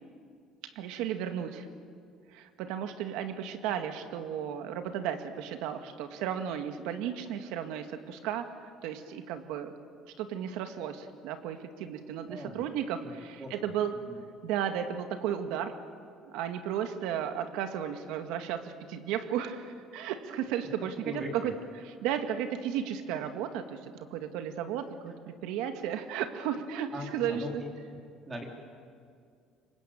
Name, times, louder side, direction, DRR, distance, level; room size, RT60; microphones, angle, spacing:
voice 1, 0.6-1.7 2.3-8.5 8.8-9.7 10.1-14.0 14.4-15.8 16.3-21.5 22.0-23.8 24.1-27.6, right 9 dB, 85° right, 7 dB, 2.0 m, -34 dB
voice 2, 12.3-12.6 13.0-13.1 13.4-13.5 13.9-14.2 21.0-21.5 26.9-27.7 28.3-28.4, equal, 20° right, 2 dB, 4.0 m, -39 dB
27.0 x 24.0 x 8.9 m, 2.3 s
cardioid pair, 155°, 0 cm